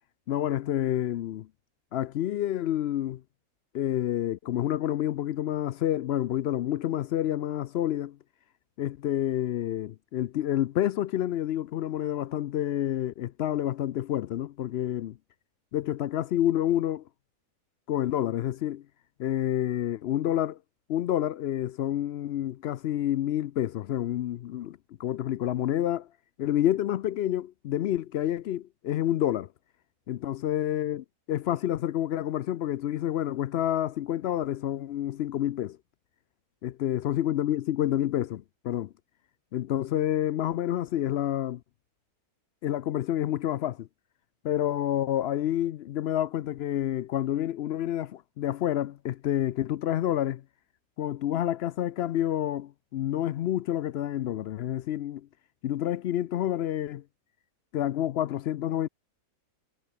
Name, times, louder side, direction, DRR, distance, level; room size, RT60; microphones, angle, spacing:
voice 1, 0.3-1.5 1.9-3.2 3.7-8.2 8.8-15.2 15.7-17.0 17.9-18.8 19.2-20.6 20.9-26.1 26.4-29.5 30.1-35.8 36.6-38.9 39.5-41.6 42.6-43.9 44.4-50.4 51.0-55.3 55.6-57.0 57.7-58.9, left 12 dB, 85° left, 0.5 m, -28 dB
omnidirectional pair, 1.6 m